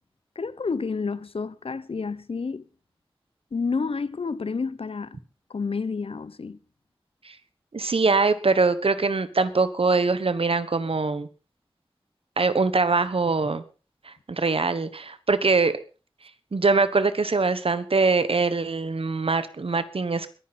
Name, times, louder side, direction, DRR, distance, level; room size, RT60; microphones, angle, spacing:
voice 1, 0.4-2.6 3.5-5.2 5.5-6.6, left 4 dB, 85° left, 0.6 m, -29 dB
voice 2, 7.7-11.3 12.4-13.6 14.0-15.7 16.5-20.3, right 4 dB, 80° right, 1.2 m, -23 dB
21.5 x 9.9 x 4.2 m
wide cardioid pair, 65°, 10 cm